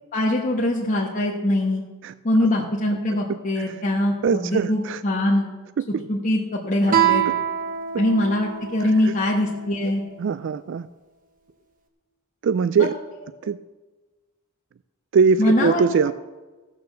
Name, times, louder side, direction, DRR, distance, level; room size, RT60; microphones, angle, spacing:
voice 1, 0.1-1.8 2.2-5.5 6.1-7.3 8.0-10.0 12.8-12.9 15.4-15.8, left 1 dB, 35° left, -3 dB, 1.2 m, -22 dB
voice 2, 4.2-5.0 5.8-6.0 6.9-7.0 7.3-7.4 8.8-9.2 10.2-10.9 12.4-12.9 13.4-13.6 15.1-16.1, right 5 dB, 55° right, 15 dB, 0.3 m, -22 dB
Guitar, 6.9-10.2, right 9 dB, 40° right, 1.1 m, -25 dB
15.0 x 6.8 x 6.6 m, 1.2 s
head